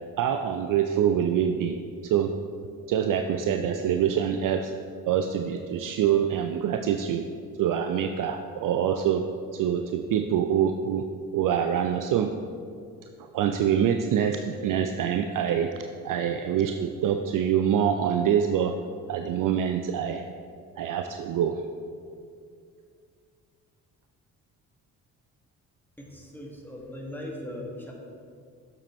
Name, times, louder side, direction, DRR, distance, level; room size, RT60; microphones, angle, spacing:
voice 1, 0.2-1.8 2.0-2.3 2.9-4.7 5.1-7.2 7.6-9.2 9.5-11.1 11.3-12.3 13.2-18.8 19.1-20.3 20.8-21.6, right 9 dB, 50° right, 6 dB, 0.5 m, -25 dB
voice 2, 26.0-27.9, left 1 dB, 5° left, -2 dB, 1.8 m, -39 dB
7.5 x 7.3 x 3.1 m, 2.3 s
hypercardioid pair, 40°, 44 cm